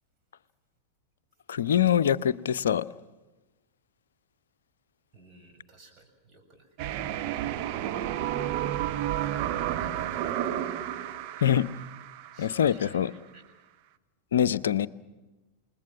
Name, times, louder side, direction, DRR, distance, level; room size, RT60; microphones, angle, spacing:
voice 1, 1.5-2.9 11.4-11.7 12.4-13.1 14.3-14.9, left 9 dB, 65° left, 13 dB, 0.7 m, -24 dB
voice 2, 5.1-6.7 9.7-10.7 12.3-13.4, right 2 dB, 30° right, 3 dB, 6.8 m, -54 dB
sound 1, 6.8-12.7, right 11 dB, 45° right, 1.2 m, -31 dB
28.5 x 20.5 x 6.2 m, 1.1 s
figure-of-eight pair, 90°, 0 cm